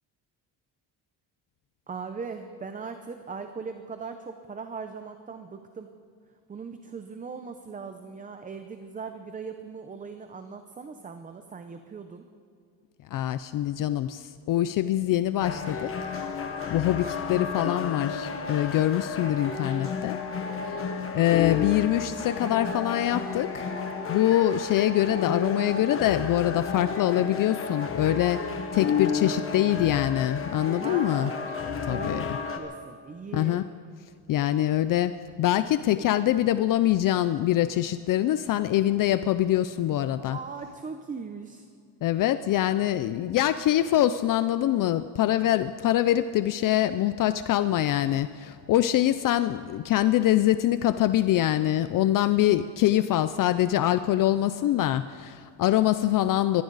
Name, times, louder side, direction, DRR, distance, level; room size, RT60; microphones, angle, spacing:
voice 1, 1.9-5.9 6.5-12.2 30.8-31.5 31.9-33.6 40.2-41.6, right 5 dB, 20° right, 7 dB, 0.6 m, -39 dB
voice 2, 13.1-15.9 16.7-20.2 21.1-23.6 24.1-31.3 31.9-32.4 33.3-33.6 34.3-40.4 42.0-56.6, left 13 dB, 55° left, 12 dB, 0.5 m, -24 dB
sound 1, 15.4-32.6, left 5 dB, 30° left, 1.3 m, -32 dB
22.0 x 15.0 x 4.0 m, 2.4 s
cardioid pair, 165°, 41 cm